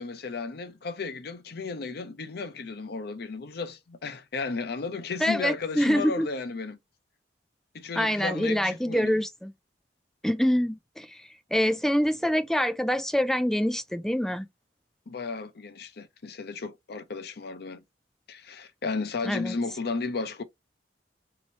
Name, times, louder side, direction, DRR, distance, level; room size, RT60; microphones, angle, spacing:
voice 1, 0.0-6.8 7.7-9.2 15.1-17.8 18.3-20.4, left 4 dB, 60° left, 0.6 m, -34 dB
voice 2, 5.2-6.3 8.0-9.5 10.2-11.2 11.5-14.5 19.2-19.6, equal, 5° left, 0.4 m, -25 dB
4.2 x 2.9 x 2.8 m
head